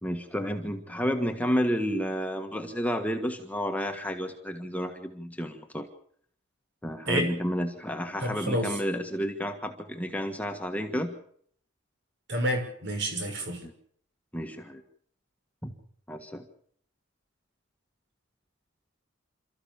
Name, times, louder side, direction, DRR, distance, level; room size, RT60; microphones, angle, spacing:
voice 1, 0.0-5.9 6.8-11.1 13.6-13.7 14.3-14.8 15.6-15.7 16.1-16.4, equal, 10° left, 4 dB, 1.6 m, -31 dB
voice 2, 8.2-8.8 12.3-13.6, equal, 60° right, 4 dB, 6.2 m, -29 dB
28.0 x 14.0 x 7.1 m, 0.63 s
head